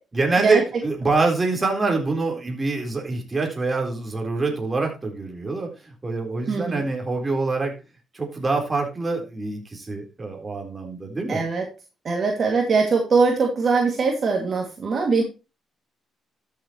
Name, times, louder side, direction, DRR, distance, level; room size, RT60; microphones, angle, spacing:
voice 1, 0.1-7.7 8.1-11.4, right 3 dB, 25° right, 1 dB, 3.8 m, -25 dB
voice 2, 6.5-6.8 11.3-11.7 12.0-15.2, right 4 dB, 45° right, 1 dB, 2.2 m, -21 dB
13.0 x 7.6 x 3.0 m, 0.29 s
cardioid pair, 90°, 0 cm